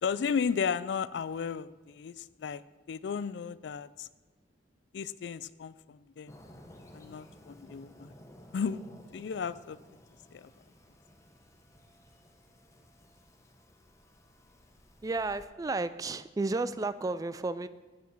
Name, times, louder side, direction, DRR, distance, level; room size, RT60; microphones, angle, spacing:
voice 1, 0.0-2.6 2.9-4.1 4.9-6.3 6.9-8.1 8.5-8.8 9.1-9.8 10.3-10.5, left 6 dB, 65° left, 17 dB, 0.3 m, -34 dB
Fireworks, 6.3-15.4, equal, 15° left, 0.9 m, -55 dB
voice 2, 15.0-17.7, right 3 dB, 20° right, 14 dB, 0.3 m, -32 dB
8.8 x 7.0 x 6.1 m, 1.2 s
head